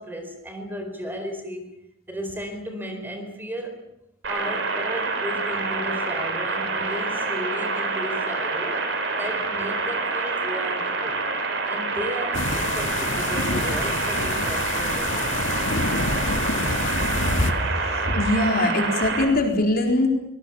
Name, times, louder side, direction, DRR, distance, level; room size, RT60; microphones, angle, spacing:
voice 1, 0.0-1.7 2.1-3.8 4.3-11.3 11.6-15.4, equal, 10° right, 5 dB, 4.3 m, -34 dB
sound 1, 4.2-19.2, right 3 dB, 70° right, 5.0 m, -27 dB
sound 2, 12.3-17.5, left 3 dB, 75° left, 2.0 m, -27 dB
voice 2, 18.0-20.1, left 1 dB, 50° left, 2 dB, 4.3 m, -21 dB
24.5 x 20.0 x 7.2 m, 0.85 s
head